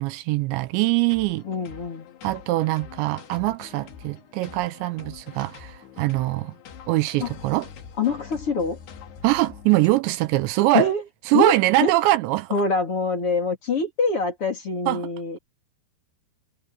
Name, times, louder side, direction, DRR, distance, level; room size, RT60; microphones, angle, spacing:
voice 1, 0.0-1.4 2.2-6.5 6.9-7.7 9.2-10.9 11.3-12.6 14.9-15.1, right 18 dB, 85° right, 2.9 m, -23 dB
sound 1, 1.1-9.9, left 7 dB, 65° left, 4.1 m, -44 dB
voice 2, 1.4-2.1 7.2-7.3 8.0-8.8 10.7-11.0 11.3-11.5 11.8-11.9 12.5-15.4, left 3 dB, 35° left, 3.4 m, -24 dB
omnidirectional pair, 5.4 m